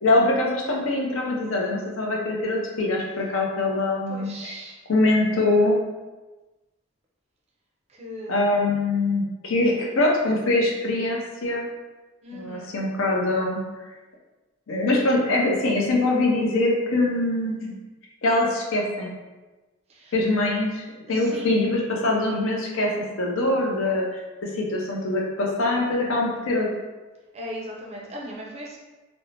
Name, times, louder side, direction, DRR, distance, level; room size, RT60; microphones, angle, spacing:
voice 1, 0.0-4.5 4.9-5.8 8.3-11.6 12.3-13.6 14.7-17.7 18.2-19.1 20.1-22.9 23.2-26.7, left 2 dB, 75° left, -2 dB, 0.5 m, -23 dB
voice 2, 4.1-4.8 7.9-8.5 12.2-12.7 19.9-20.2 21.1-21.5 27.3-28.8, equal, 30° right, -2 dB, 0.4 m, -38 dB
2.5 x 2.0 x 3.1 m, 1.2 s
head